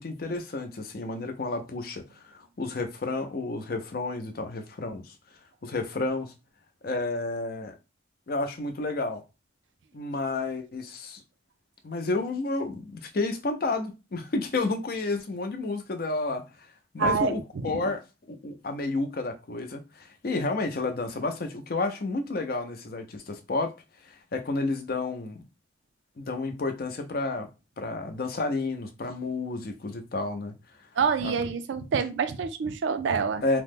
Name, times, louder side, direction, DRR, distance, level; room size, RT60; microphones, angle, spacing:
voice 1, 0.0-2.0 2.3-5.0 5.6-6.3 6.8-7.7 8.3-9.2 9.9-11.2 11.8-16.4 16.9-18.0 18.3-23.7 24.3-25.4 26.2-27.5 27.8-30.5 31.2-31.3 33.4-33.6, left 3 dB, 50° left, 0.5 m, -31 dB
voice 2, 17.0-17.8 31.0-33.4, right 5 dB, 75° right, 0.4 m, -27 dB
2.9 x 2.1 x 3.4 m
head